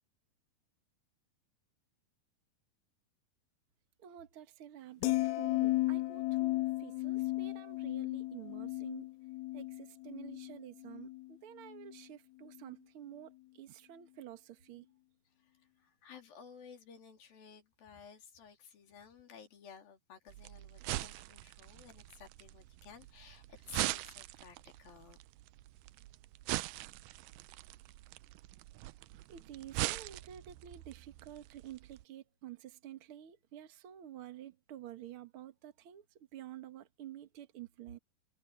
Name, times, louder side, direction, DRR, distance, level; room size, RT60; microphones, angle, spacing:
voice 1, 4.0-9.1 9.5-14.8 29.3-38.0, right 11 dB, 55° right, 1.6 m, -50 dB
sound 1, 5.0-11.3 11.6-12.0, left 19 dB, 85° left, 2.6 m, -35 dB
voice 2, 15.4-25.2, left 7 dB, 70° left, 4.8 m, -55 dB
sound 2, 20.3-32.0, right 18 dB, 85° right, 1.9 m, -42 dB
omnidirectional pair, 4.4 m